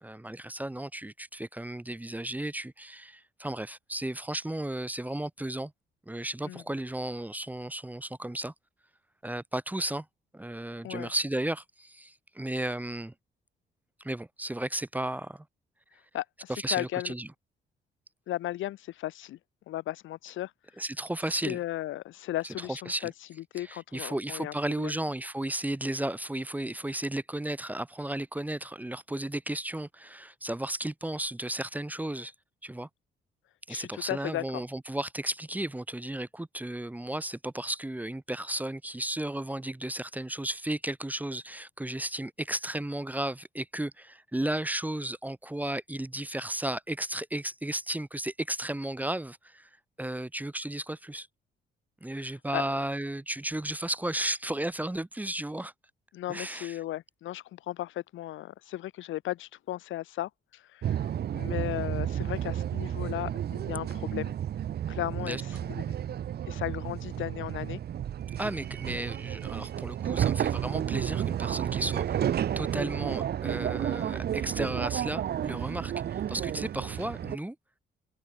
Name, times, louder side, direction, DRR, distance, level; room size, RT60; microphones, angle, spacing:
voice 1, 0.0-5.7 6.1-8.5 9.2-10.1 10.3-13.1 14.0-15.4 16.5-17.3 20.8-21.6 22.4-23.1 23.6-32.3 32.6-32.9 33.7-49.7 50.0-51.3 52.0-55.7 56.3-56.8 65.2-65.4 68.4-77.6, right 1 dB, 10° right, 0.9 m, -34 dB
voice 2, 16.1-17.1 18.3-19.4 19.7-20.5 21.4-23.1 23.5-24.9 33.7-34.6 52.5-52.8 56.1-61.1 61.3-64.3 64.9-65.8 66.5-67.8, left 14 dB, 75° left, 0.9 m, -36 dB
sound 1, 60.8-77.4, right 10 dB, 55° right, 0.8 m, -32 dB
cardioid pair, 90°, 20 cm